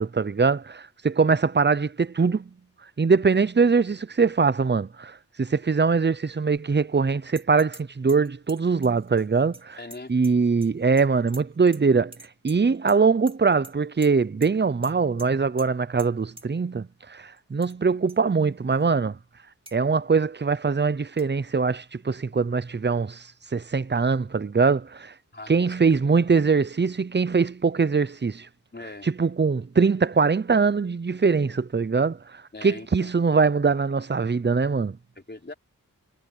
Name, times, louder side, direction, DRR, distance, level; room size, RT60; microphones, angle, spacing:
voice 1, 0.0-2.5 3.0-9.8 10.1-12.1 12.4-19.2 19.7-25.1 25.5-28.5 29.2-35.0, right 5 dB, 30° right, 0.8 m, -22 dB
sound 1, 7.3-7.8 8.1-10.7 11.0-11.8 12.1-13.0 13.3-13.7 14.0-14.1 14.4-14.5 14.8-14.9 15.2-15.3 15.6-15.7 16.0-16.1 16.4-16.5 17.4-17.7 18.1-18.2 18.7-18.8 19.7-19.8 21.2-21.3, right 1 dB, 15° right, 2.6 m, -46 dB
voice 2, 9.8-10.1 25.3-25.8 28.7-29.1 32.5-33.1 35.2-35.5, left 2 dB, 30° left, 4.3 m, -40 dB
wide cardioid pair, 60°, 35 cm